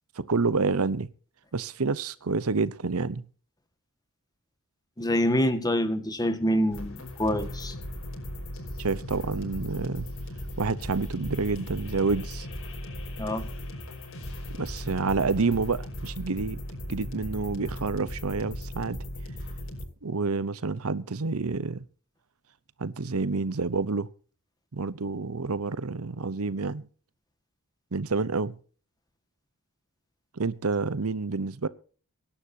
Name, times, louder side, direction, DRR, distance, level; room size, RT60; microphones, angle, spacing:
voice 1, 0.2-1.1 1.5-3.2 8.8-10.1 10.6-12.5 14.6-16.6 16.9-19.0 20.0-21.8 22.8-24.1 24.7-26.9 27.9-28.6 30.3-31.7, right 4 dB, 85° right, 0.8 m, -28 dB
voice 2, 5.0-7.7 13.2-13.5, equal, 20° left, 1.8 m, -26 dB
sound 1, 6.7-19.9, left 1 dB, 65° left, 5.5 m, -37 dB
23.5 x 11.5 x 2.8 m
head